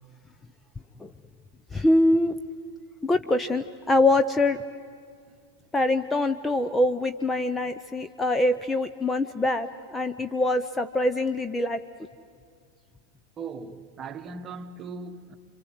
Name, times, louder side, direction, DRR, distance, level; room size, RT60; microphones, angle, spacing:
voice 1, 1.7-2.3 3.0-4.6 5.7-11.8, left 2 dB, 10° left, 0.7 m, -24 dB
voice 2, 13.4-15.4, right 4 dB, 25° right, 1.4 m, -39 dB
30.0 x 25.0 x 7.9 m
figure-of-eight pair, 90°, 0 cm